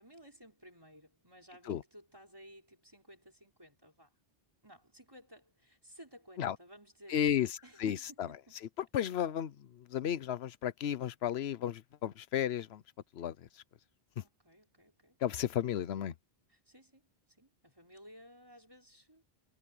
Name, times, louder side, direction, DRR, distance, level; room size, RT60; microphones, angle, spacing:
voice 1, 0.0-4.1 4.6-7.2 7.6-8.2 8.5-8.6 14.2-15.2 16.5-19.2, equal, 20° right, 5.6 m, -56 dB
voice 2, 7.1-8.3 8.6-12.8 13.1-13.6 14.2-14.3 15.2-16.1, left 10 dB, 80° left, 1.0 m, -34 dB
omnidirectional pair, 1.1 m